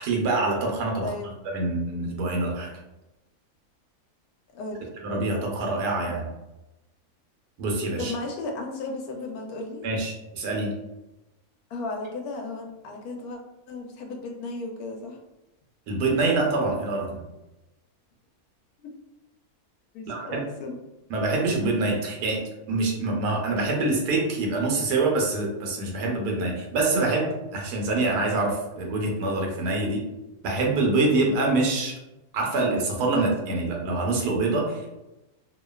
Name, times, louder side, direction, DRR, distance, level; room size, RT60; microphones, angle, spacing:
voice 1, 0.0-1.1 1.5-2.7 5.0-6.3 7.6-8.1 9.8-10.8 15.9-17.2 20.1-20.5 21.1-22.4 22.7-30.0 30.4-31.9 32.3-34.9, right 2 dB, 90° right, 0 dB, 1.2 m, -25 dB
voice 2, 1.0-1.3 4.5-4.9 8.0-9.8 11.7-13.4 13.7-15.2 19.9-20.8 29.8-29.9, left 3 dB, 80° left, 2 dB, 1.0 m, -35 dB
2.8 x 2.2 x 2.2 m, 0.98 s
omnidirectional pair, 1.6 m